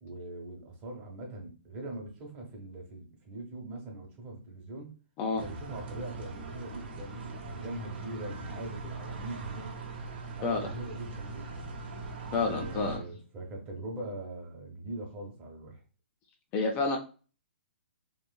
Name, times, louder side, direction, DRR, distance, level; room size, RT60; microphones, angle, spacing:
voice 1, 0.0-4.9 5.3-9.7 10.4-11.7 12.4-15.8, right 2 dB, 30° right, 1.0 m, -42 dB
sound 1, 5.4-13.0, right 3 dB, 60° right, 0.8 m, -41 dB
voice 2, 12.3-13.0 16.5-17.0, left 4 dB, 30° left, 0.5 m, -29 dB
3.1 x 2.4 x 2.2 m
hypercardioid pair, 130°, 6 cm